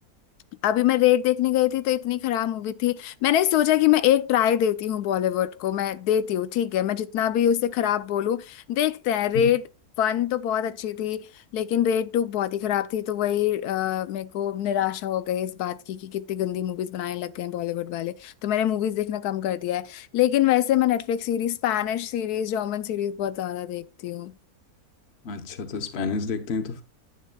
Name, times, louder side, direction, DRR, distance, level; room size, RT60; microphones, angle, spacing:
voice 1, 0.6-9.6 10.0-24.3, left 11 dB, 85° left, 1.1 m, -24 dB
voice 2, 25.2-26.8, left 5 dB, 45° left, 1.2 m, -30 dB
11.0 x 9.5 x 2.3 m
omnidirectional pair, 1.6 m